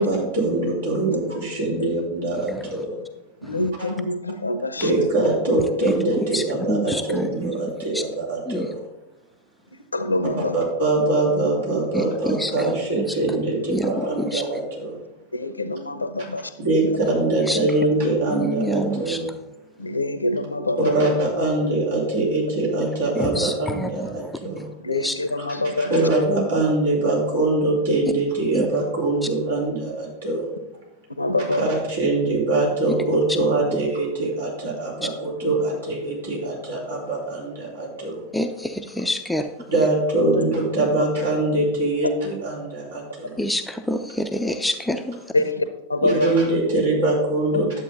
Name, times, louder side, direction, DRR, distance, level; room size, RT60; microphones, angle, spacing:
voice 1, 0.0-3.0 3.8-3.9 4.8-8.8 10.5-15.0 16.6-19.3 20.8-24.7 25.4-25.5 25.8-30.5 31.5-38.2 39.7-43.4 46.0-47.8, right 2 dB, 65° right, -4 dB, 3.8 m, -23 dB
voice 2, 3.4-5.1 9.7-10.5 15.3-16.5 16.8-16.9 19.8-21.1 24.8-26.0 31.2-31.7 40.3-40.5 41.0-41.1 45.3-46.3 47.5-47.6, left 2 dB, 80° left, 11 dB, 0.8 m, -25 dB
voice 3, 6.3-7.5 7.9-8.0 8.5-8.7 11.9-12.7 13.0-13.1 13.7-14.0 14.3-14.4 17.5-17.6 18.3-19.2 23.2-24.1 24.6-24.7 25.0-25.1 28.5-28.7 38.3-39.5 43.4-45.2, equal, 5° left, 6 dB, 0.6 m, -27 dB
11.0 x 7.8 x 3.9 m, 0.98 s
figure-of-eight pair, 90°, 0 cm